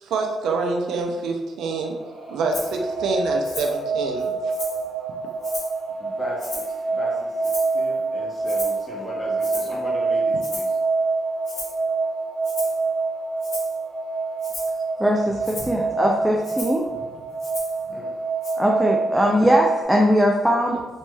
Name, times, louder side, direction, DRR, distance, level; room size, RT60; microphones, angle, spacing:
voice 1, 0.0-1.9 2.3-4.3, right 3 dB, 80° right, 2 dB, 0.4 m, -26 dB
sound 1, 1.7-19.8, right 3 dB, 40° right, 0.9 m, -26 dB
Rattle (instrument), 2.5-2.7 3.4-3.8 4.2-4.9 5.4-5.8 6.4-6.8 7.4-7.9 8.4-8.8 9.4-9.8 10.4-10.8 11.4-11.8 12.4-12.8 13.4-13.8 14.4-14.8 15.4-15.7 16.4-16.8 17.4-17.8 18.4-18.5, left 2 dB, 70° left, 1.0 m, -36 dB
voice 2, 6.0-10.8 16.9-17.0 17.8-18.1, equal, 20° left, -3 dB, 0.9 m, -37 dB
voice 3, 15.0-16.9 18.5-20.9, equal, 5° right, 0 dB, 0.3 m, -20 dB
3.0 x 3.0 x 2.2 m, 1.2 s
cardioid pair, 90°, 0 cm